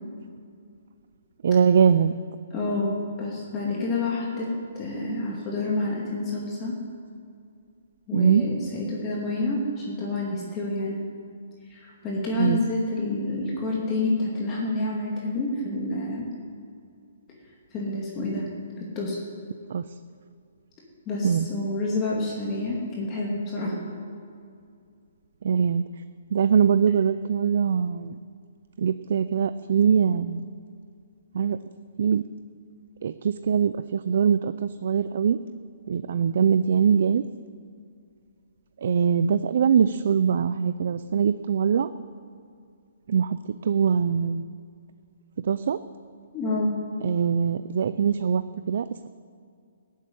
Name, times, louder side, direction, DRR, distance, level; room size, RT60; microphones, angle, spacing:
voice 1, 1.4-2.2 8.1-8.4 12.4-12.6 19.7-19.8 21.2-21.5 25.4-25.8 26.3-28.2 28.8-30.4 31.3-31.6 32.0-32.2 33.0-35.4 35.9-37.2 38.8-41.9 43.1-44.5 45.4-45.8 47.0-48.4 48.7-49.1, right 7 dB, 55° right, 12 dB, 0.5 m, -22 dB
voice 2, 2.5-4.5 4.7-6.8 8.1-11.0 11.7-16.3 17.7-18.5 18.8-19.2 21.1-23.8 46.3-46.7, left 2 dB, 20° left, -4 dB, 2.4 m, -28 dB
15.0 x 8.4 x 9.3 m, 2.3 s
hypercardioid pair, 165°, 0 cm